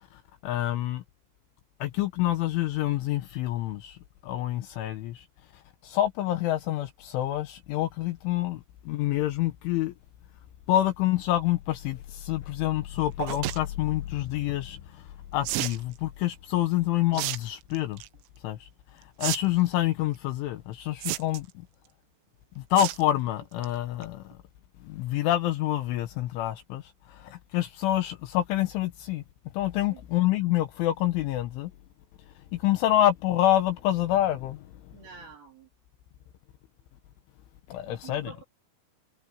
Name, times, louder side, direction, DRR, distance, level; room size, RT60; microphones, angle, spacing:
voice 1, 0.1-1.0 1.8-4.0 4.2-5.2 5.8-9.9 10.7-15.0 15.3-18.0 18.4-18.7 18.9-21.5 22.6-24.4 24.8-29.2 29.5-31.7 32.5-34.7 37.7-38.3, left 13 dB, 75° left, 3.4 m, -27 dB
sound 1, 13.2-13.6 15.5-15.8 17.1-17.4 17.8-18.1 19.2-19.4 19.7-19.8 21.0-21.5 22.8-23.0 23.4-23.7 24.0-24.1 24.3-24.4, right 17 dB, 85° right, 3.6 m, -31 dB
voice 2, 34.9-35.7 37.8-38.4, right 6 dB, 50° right, 4.9 m, -47 dB
omnidirectional pair, 6.0 m